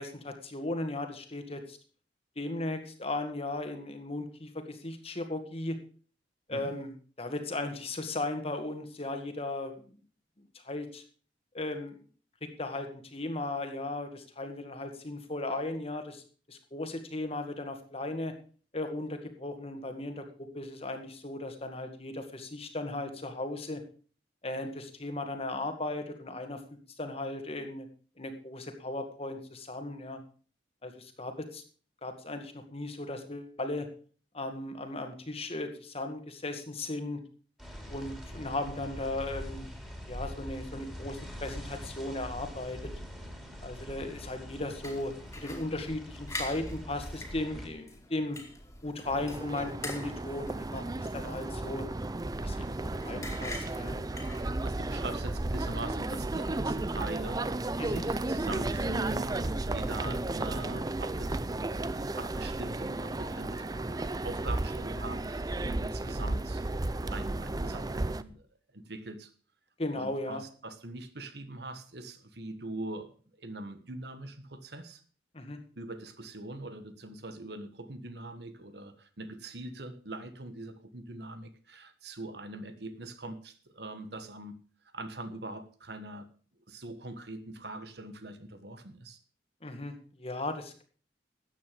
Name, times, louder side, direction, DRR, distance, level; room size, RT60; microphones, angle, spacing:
voice 1, 0.0-1.8 2.4-5.8 6.5-6.9 7.2-9.8 10.7-11.0 11.5-12.0 12.4-16.2 16.5-18.3 18.7-23.8 24.4-26.6 27.0-27.9 28.2-30.2 30.8-31.6 32.0-33.9 34.3-37.2 37.9-39.7 40.1-42.9 43.6-47.8 48.1-48.4 48.8-51.9 52.4-54.0 57.8-58.0 69.8-70.4 75.3-75.6 89.6-90.8, left 2 dB, 35° left, 6 dB, 2.0 m, -36 dB
sound 1, 37.6-47.7, equal, ahead, 3.2 m, -43 dB
sound 2, 44.8-54.9, left 1 dB, 15° left, 2.6 m, -45 dB
sound 3, 49.0-68.2, right 2 dB, 20° right, 0.5 m, -33 dB
voice 2, 54.6-61.6 62.0-66.7 67.1-68.4 68.7-69.3 69.9-73.1 73.4-75.0 75.8-84.5 84.9-86.3 86.7-89.2, right 2 dB, 65° right, 10 dB, 1.5 m, -42 dB
13.5 x 9.4 x 5.2 m, 0.41 s
head